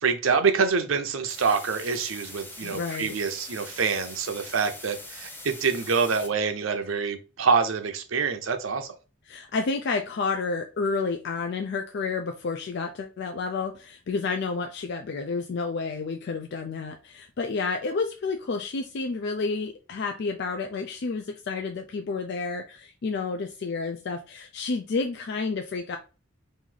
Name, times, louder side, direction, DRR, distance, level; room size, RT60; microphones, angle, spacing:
voice 1, 0.0-8.9, right 5 dB, 85° right, 0.6 m, -26 dB
sound 1, 1.3-6.3, left 2 dB, 10° left, 0.7 m, -42 dB
voice 2, 2.6-3.1 9.3-26.0, left 4 dB, 55° left, 0.4 m, -30 dB
3.1 x 2.6 x 3.8 m
head